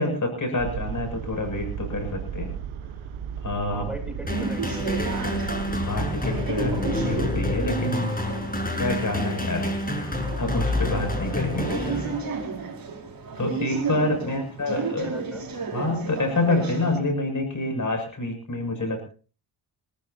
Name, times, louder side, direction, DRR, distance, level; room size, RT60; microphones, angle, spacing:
voice 1, 0.0-2.5 3.4-3.8 5.9-8.1 8.7-9.8 10.4-11.7 13.4-15.1 15.7-19.1, left 2 dB, 40° left, 5 dB, 7.5 m, -27 dB
sound 1, 0.6-8.9, right 8 dB, 80° right, 1.5 m, -36 dB
voice 2, 3.7-5.2 11.5-12.5 14.2-15.5, right 1 dB, ahead, 4 dB, 7.4 m, -39 dB
sound 2, 4.3-12.6, left 1 dB, 20° left, 7.5 m, -28 dB
sound 3, 4.3-17.0, right 5 dB, 45° right, 5.0 m, -34 dB
27.0 x 15.0 x 2.9 m, 0.39 s
supercardioid pair, 60°, 47 cm